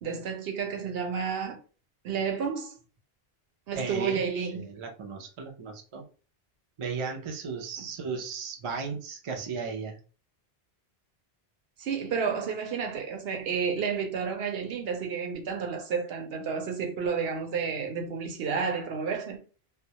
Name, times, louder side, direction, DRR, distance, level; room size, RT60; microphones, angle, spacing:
voice 1, 0.0-1.6 2.0-2.8 3.7-4.6 11.8-19.4, right 6 dB, 70° right, 0.8 m, -31 dB
voice 2, 3.7-6.1 6.8-10.0, right 5 dB, 50° right, 0.4 m, -35 dB
2.2 x 2.0 x 2.8 m
omnidirectional pair, 1.1 m